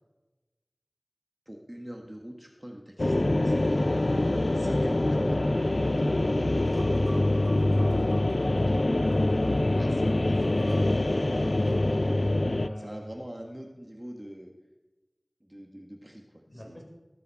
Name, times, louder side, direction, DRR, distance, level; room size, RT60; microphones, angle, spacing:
voice 1, 1.5-3.8 4.5-5.4 8.7-11.0 11.4-12.3 12.8-14.5 15.4-16.8, equal, 20° right, 1 dB, 1.4 m, -44 dB
sound 1, 3.0-12.7, left 1 dB, 60° left, 0.5 m, -25 dB
voice 2, 5.9-6.4 12.5-13.2 16.5-16.8, equal, 45° left, -1 dB, 3.9 m, -45 dB
sound 2, 6.4-11.8, right 1 dB, 90° right, 3.8 m, -52 dB
18.5 x 6.9 x 4.7 m, 1.1 s
wide cardioid pair, 45°, 0 cm